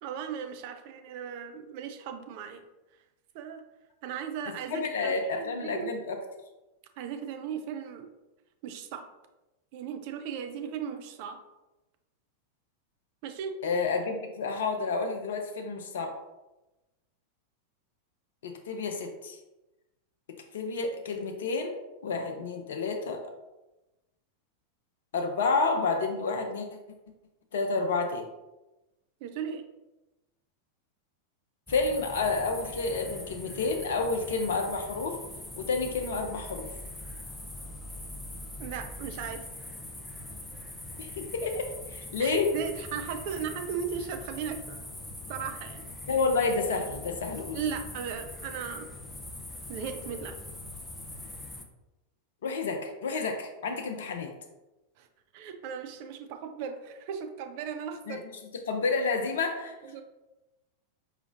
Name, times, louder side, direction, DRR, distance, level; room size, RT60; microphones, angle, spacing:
voice 1, 0.0-2.6 3.3-3.6 4.0-5.9 7.0-8.1 8.6-9.1 9.7-11.4 13.2-13.6 29.2-29.6 38.6-39.5 42.2-44.8 45.3-45.8 47.5-48.9 49.7-50.4 55.0-55.1 55.3-58.2 59.8-60.0, right 7 dB, 45° right, 6 dB, 0.4 m, -37 dB
voice 2, 4.7-6.2 13.6-16.2 18.4-19.4 20.5-23.2 25.1-26.7 27.5-28.3 31.7-35.2 35.6-36.7 41.0-42.5 46.1-47.6 52.4-54.3 58.1-58.2 58.7-59.7, left 4 dB, 60° left, 4 dB, 0.4 m, -30 dB
sound 1, 31.7-51.6, left 1 dB, 10° left, 0.5 m, -42 dB
4.8 x 3.0 x 2.5 m, 1.0 s
figure-of-eight pair, 90°, 0 cm